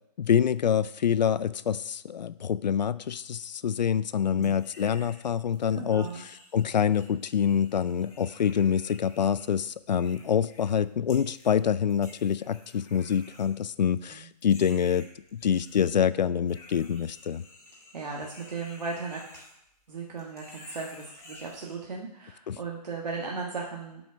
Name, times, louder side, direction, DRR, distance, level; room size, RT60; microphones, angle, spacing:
voice 1, 0.2-17.4 22.5-22.6, left 8 dB, 85° left, 17 dB, 0.5 m, -26 dB
voice 2, 4.2-4.6 5.7-6.2 14.1-14.3 17.9-19.4 19.9-24.0, right 4 dB, 80° right, -2 dB, 1.6 m, -37 dB
sound 1, 4.4-5.2 5.5-10.8 11.1-11.6 11.9-14.0 14.4-15.9 16.5-19.9 20.2-21.7, left 2 dB, 15° left, 1.7 m, -52 dB
7.8 x 5.4 x 6.2 m, 0.78 s
hypercardioid pair, 160°, 21 cm